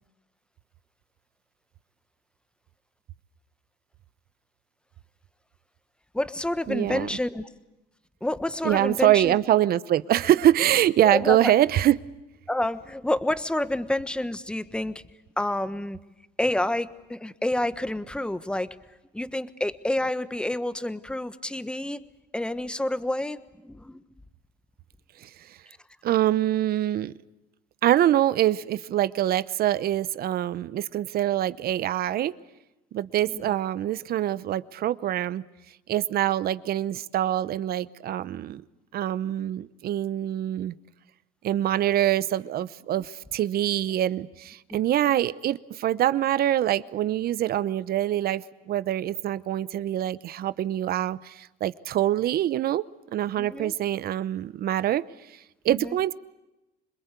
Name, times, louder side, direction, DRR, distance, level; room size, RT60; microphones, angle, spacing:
voice 1, 6.1-7.5 8.2-9.4 11.0-11.5 12.5-15.0 15.4-16.0 16.4-18.7 19.1-22.0 22.3-24.0 33.3-33.5 53.4-53.7 55.7-56.0, left 1 dB, 5° left, 12 dB, 1.2 m, -28 dB
voice 2, 6.7-7.1 8.6-12.0 25.2-25.6 26.0-27.1 27.8-32.3 32.9-35.4 35.9-38.6 38.9-40.7 41.4-52.8 53.1-55.0 55.3-56.1, right 12 dB, 50° right, 17 dB, 0.9 m, -24 dB
27.0 x 21.0 x 8.3 m, 0.98 s
supercardioid pair, 100°, 20 cm